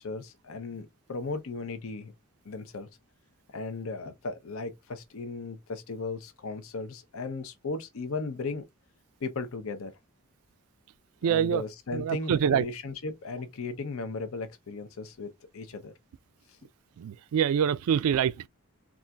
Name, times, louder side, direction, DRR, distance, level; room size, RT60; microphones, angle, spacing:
voice 1, 0.0-2.1 2.4-2.9 3.5-8.6 9.2-9.9 11.2-15.9, left 3 dB, 70° left, 0.6 m, -36 dB
voice 2, 11.2-11.6 11.9-12.6 17.0-18.5, right 8 dB, 85° right, 0.3 m, -25 dB
3.9 x 2.4 x 2.2 m
head